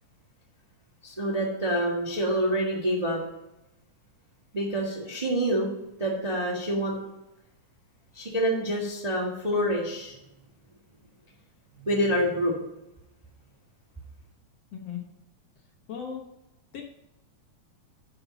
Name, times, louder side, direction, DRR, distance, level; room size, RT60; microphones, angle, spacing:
voice 1, 1.0-3.2 4.5-5.7 6.0-7.0 8.1-10.2 11.8-12.7, equal, 20° right, -3 dB, 1.0 m, -27 dB
voice 2, 15.9-16.2 16.7-16.8, left 7 dB, 65° left, 1 dB, 1.9 m, -36 dB
11.5 x 5.8 x 4.0 m, 0.91 s
omnidirectional pair, 3.6 m